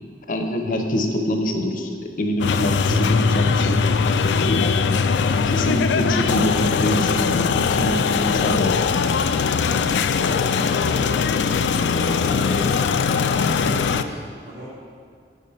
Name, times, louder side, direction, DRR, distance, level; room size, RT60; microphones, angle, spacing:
voice 1, 0.3-4.8 5.2-8.8, left 1 dB, 50° left, 5 dB, 0.6 m, -25 dB
sound 1, 2.4-14.0, left 6 dB, 85° left, 0.4 m, -21 dB
sound 2, 2.9-11.3, left 2 dB, 5° right, 0.7 m, -29 dB
voice 2, 10.1-11.2 11.7-14.7, right 1 dB, 70° right, -6 dB, 2.4 m, -35 dB
10.5 x 4.1 x 5.6 m, 2.1 s
head